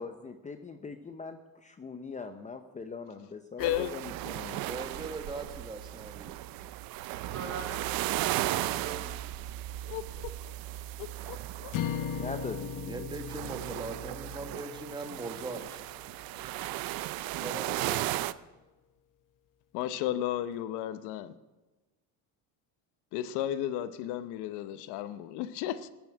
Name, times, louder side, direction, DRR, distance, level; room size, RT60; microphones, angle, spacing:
voice 1, 0.0-4.6 12.1-13.1, left 4 dB, 20° left, 0.7 m, -41 dB
voice 2, 3.6-3.9 9.9-10.5 11.0-12.1 19.7-21.3 23.1-25.9, left 12 dB, 80° left, 0.8 m, -34 dB
sound 1, 3.6-18.3, right 15 dB, 60° right, 0.6 m, -36 dB
voice 3, 4.7-6.4 12.8-15.9 17.4-18.4, right 3 dB, 10° right, 1.4 m, -41 dB
voice 4, 7.3-9.3, right 5 dB, 40° right, 3.6 m, -43 dB
sound 2, 11.7-16.1, left 8 dB, 55° left, 1.0 m, -38 dB
15.0 x 7.1 x 8.7 m
cardioid pair, 120°, 39 cm